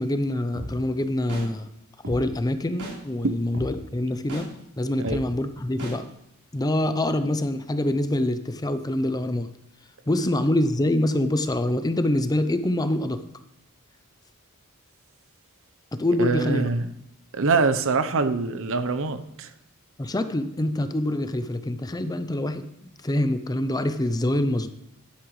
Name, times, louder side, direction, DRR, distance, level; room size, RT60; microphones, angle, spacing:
voice 1, 0.0-1.7 2.1-4.5 4.8-6.0 6.5-9.5 10.1-13.2 15.9-16.7 20.0-24.7, left 1 dB, 15° left, 0.5 m, -25 dB
sound 1, 0.5-0.7 1.3-1.4 2.0-2.2 2.8-2.9 3.5-3.7 4.3-4.4 5.0-5.2 5.8-5.9, right 1 dB, 80° right, 3.9 m, -33 dB
voice 2, 16.2-16.9 17.3-19.5, right 4 dB, 65° right, 0.8 m, -24 dB
11.5 x 11.0 x 3.2 m
head